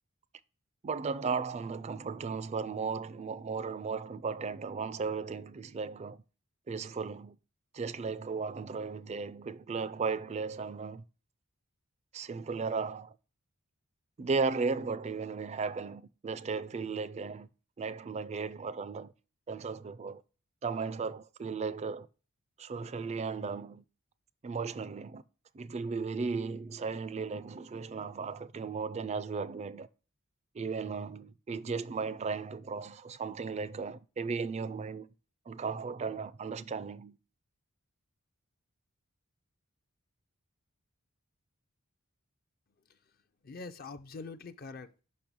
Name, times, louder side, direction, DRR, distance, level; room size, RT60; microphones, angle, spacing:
voice 1, 0.8-6.2 6.7-7.4 7.7-11.0 12.1-13.1 14.2-17.5 17.8-19.1 19.5-20.2 20.6-22.1 22.6-23.8 24.4-25.2 25.5-29.9 30.5-35.1 35.5-37.2, right 4 dB, 30° right, 0.4 m, -35 dB
voice 2, 43.4-45.0, left 4 dB, 45° left, 0.5 m, -45 dB
5.5 x 5.4 x 6.0 m
head